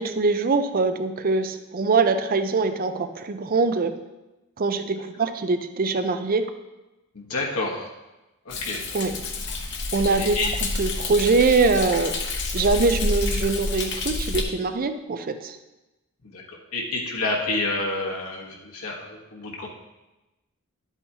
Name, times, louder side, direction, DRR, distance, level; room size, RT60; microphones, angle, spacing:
voice 1, 0.0-4.0 4.6-6.5 8.9-9.1 9.9-15.6, right 3 dB, 40° right, 9 dB, 0.5 m, -23 dB
voice 2, 7.1-7.9 8.4-8.8 10.2-10.5 16.2-19.7, left 2 dB, 70° left, -2 dB, 1.3 m, -29 dB
Thunder, 8.5-14.4, left 2 dB, 55° left, 1.0 m, -28 dB
11.0 x 8.1 x 2.9 m, 1.0 s
head